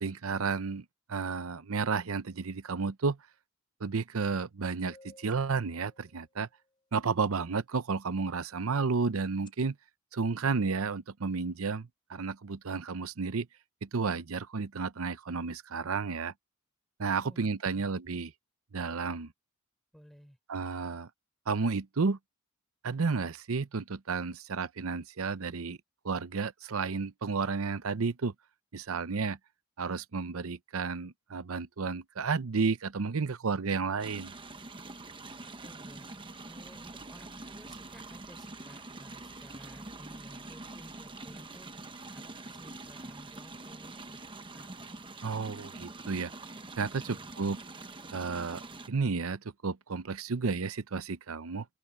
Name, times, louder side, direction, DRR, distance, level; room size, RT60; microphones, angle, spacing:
voice 1, 0.0-3.2 3.8-6.5 6.9-9.8 10.1-13.5 13.8-16.3 17.0-18.3 18.7-19.3 20.5-21.1 21.5-22.2 22.8-25.8 26.0-28.3 28.7-29.4 29.8-34.3 45.2-46.3 46.8-47.6 48.1-51.7, right 4 dB, 75° right, 0.7 m, -32 dB
sound 1, 4.9-6.6 9.2-9.5, left 2 dB, 25° left, 4.8 m, -57 dB
voice 2, 17.2-17.9 19.9-20.4 35.6-36.1 36.4-41.7 42.1-44.2 44.5-44.8 46.8-47.3, equal, ahead, 4.0 m, -55 dB
sound 2, 34.0-48.9, right 2 dB, 25° right, 1.1 m, -45 dB
open air
head